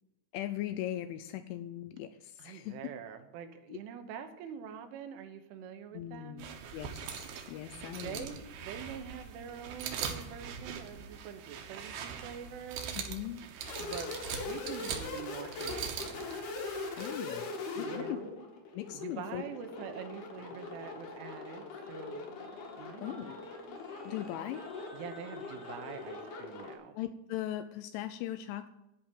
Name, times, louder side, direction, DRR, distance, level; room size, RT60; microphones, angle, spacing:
voice 1, 0.3-2.8 3.7-3.8 5.9-6.4 6.7-8.4 13.0-13.4 17.0-18.2 18.7-19.4 23.0-23.4 24.0-24.7 26.9-28.7, left 12 dB, 85° left, 9 dB, 3.0 m, -39 dB
voice 2, 2.4-6.6 7.4-13.0 13.5-16.4 17.8-18.5 18.9-22.3 22.8-23.4 24.9-27.0, right 8 dB, 85° right, 7 dB, 3.5 m, -45 dB
sound 1, 6.4-17.1, right 7 dB, 65° right, 2.7 m, -42 dB
sound 2, 13.6-26.7, left 4 dB, 60° left, 3.6 m, -41 dB
Singing, 20.4-26.4, right 1 dB, 35° right, 1.1 m, -56 dB
13.5 x 5.0 x 8.9 m, 0.89 s
omnidirectional pair, 5.5 m